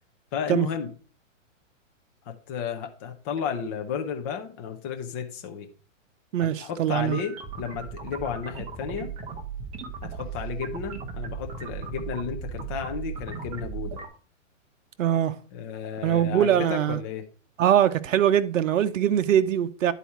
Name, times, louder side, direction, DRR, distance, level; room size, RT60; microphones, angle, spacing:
voice 1, 0.3-0.9 2.3-5.7 6.4-9.1 10.1-14.0 15.5-17.2, left 7 dB, 15° left, 0.4 m, -33 dB
voice 2, 6.3-7.2 15.0-15.3 16.0-17.0 17.6-19.9, right 10 dB, 75° right, 0.8 m, -22 dB
sound 1, 6.9-14.1, right 5 dB, 15° right, 0.8 m, -36 dB
10.0 x 4.2 x 4.6 m
hypercardioid pair, 145°, 39 cm